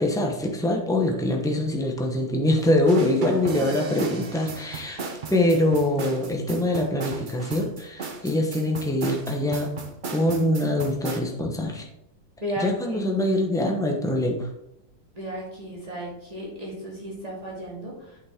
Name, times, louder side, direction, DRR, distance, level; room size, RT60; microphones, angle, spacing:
voice 1, 0.0-5.0 5.3-9.7 10.1-11.9 12.6-14.5, left 1 dB, 5° left, 1 dB, 0.4 m, -24 dB
sound 1, 2.9-11.2, right 4 dB, 80° right, 0.4 m, -35 dB
voice 2, 12.4-13.0 15.1-18.2, equal, 20° right, -5 dB, 2.5 m, -34 dB
8.5 x 6.2 x 3.6 m, 0.83 s
omnidirectional pair, 2.0 m